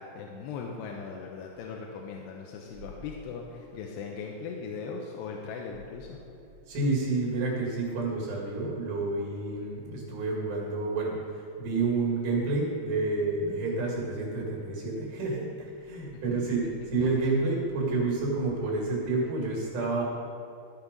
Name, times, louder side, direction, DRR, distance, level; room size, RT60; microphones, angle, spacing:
voice 1, 0.0-6.2 16.2-16.4, left 5 dB, 90° left, 0 dB, 2.9 m, -39 dB
voice 2, 6.7-11.2 11.6-20.0, right 3 dB, 90° right, -3 dB, 4.3 m, -29 dB
13.0 x 7.4 x 5.2 m, 2.5 s
omnidirectional pair, 4.7 m